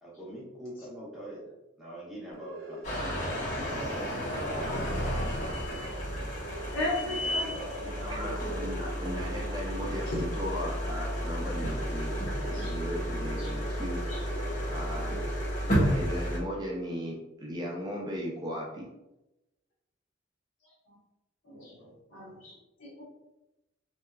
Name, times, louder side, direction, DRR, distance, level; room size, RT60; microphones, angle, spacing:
voice 1, 0.0-5.0 7.0-7.9, equal, ahead, -8 dB, 0.8 m, -44 dB
sound 1, 2.3-15.9, right 2 dB, 60° right, 0.7 m, -48 dB
sound 2, 2.8-16.4, equal, 40° left, 0.8 m, -32 dB
voice 2, 6.7-7.5 10.1-10.2 12.5-12.7 13.4-13.5 14.1-14.2 21.4-23.0, left 1 dB, 85° left, -5 dB, 1.0 m, -36 dB
voice 3, 7.8-14.0 14.7-15.2 15.7-18.9, equal, 20° right, -2 dB, 0.4 m, -37 dB
2.8 x 2.2 x 2.3 m, 0.95 s
head